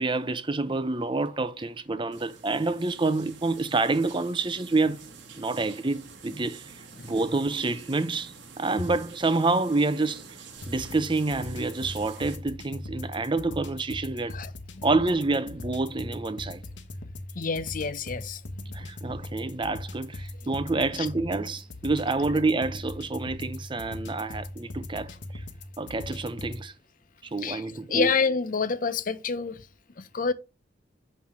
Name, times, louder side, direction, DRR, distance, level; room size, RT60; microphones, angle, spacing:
voice 1, 0.0-5.1 5.3-6.6 7.0-10.3 10.7-14.4 14.8-16.6 18.7-25.4 25.8-26.7 27.3-28.1, right 3 dB, 25° right, 0.6 m, -28 dB
sound 1, 2.1-12.4, right 5 dB, 80° right, 1.5 m, -48 dB
sound 2, 10.6-26.6, left 1 dB, 85° left, 1.2 m, -40 dB
voice 2, 14.3-14.9 17.3-18.9 20.9-21.1 27.4-29.7 30.0-30.3, left 5 dB, 50° left, 0.7 m, -29 dB
7.4 x 5.6 x 4.3 m
head